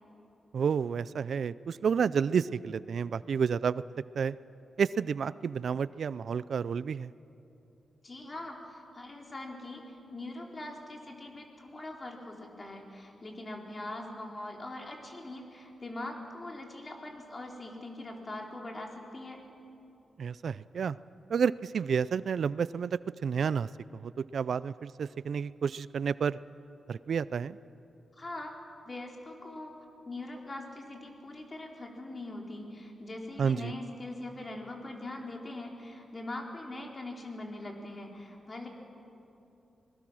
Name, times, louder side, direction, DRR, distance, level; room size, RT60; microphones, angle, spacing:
voice 1, 0.5-3.8 4.2-4.4 4.8-7.1 20.2-21.0 21.3-26.4 26.9-27.6 33.4-33.7, right 6 dB, 70° right, 18 dB, 0.4 m, -30 dB
voice 2, 8.0-19.4 28.2-28.5 28.8-29.8 30.0-38.7, left 2 dB, 35° left, 1 dB, 3.4 m, -42 dB
25.5 x 20.0 x 6.3 m, 2.8 s
cardioid pair, 90°, 0 cm